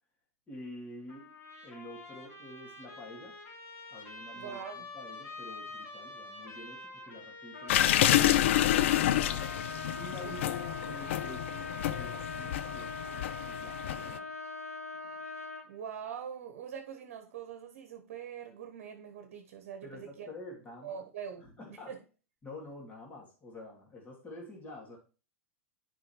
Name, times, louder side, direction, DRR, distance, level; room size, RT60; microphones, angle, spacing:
voice 1, 0.5-1.3 1.6-3.4 3.9-9.5 10.0-14.4 19.8-21.0 21.4-22.0 22.4-25.0, left 1 dB, 20° left, 2.7 m, -48 dB
Trumpet, 1.1-10.8, left 2 dB, 35° left, 3.6 m, -48 dB
voice 2, 4.3-4.8 10.2-10.4 15.7-20.3 20.8-21.5 21.9-22.0, right 8 dB, 55° right, 1.2 m, -43 dB
Trumpet 2, 7.5-15.7, left 3 dB, 80° left, 0.9 m, -41 dB
sound 1, 7.7-14.2, left 13 dB, 55° left, 0.4 m, -28 dB
10.5 x 5.2 x 3.0 m
figure-of-eight pair, 95°, 8 cm